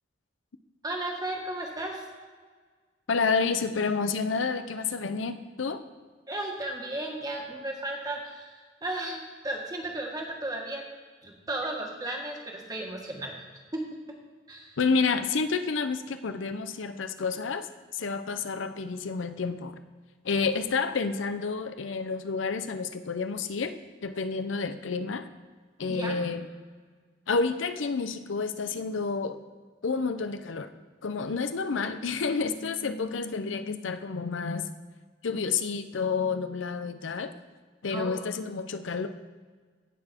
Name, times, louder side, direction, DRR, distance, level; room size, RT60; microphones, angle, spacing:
voice 1, 0.8-2.0 6.3-10.8 11.2-13.3 14.5-14.8 25.9-26.2 37.9-38.2, right 1 dB, 20° right, 0 dB, 1.7 m, -34 dB
voice 2, 3.1-5.8 14.8-17.7 17.9-19.7 20.2-23.8 24.0-25.3 25.8-26.5 27.3-29.4 29.8-30.7 31.0-34.7 35.2-37.3 37.8-39.1, left 4 dB, 80° left, 10 dB, 0.6 m, -29 dB
16.5 x 6.1 x 4.4 m, 1.5 s
head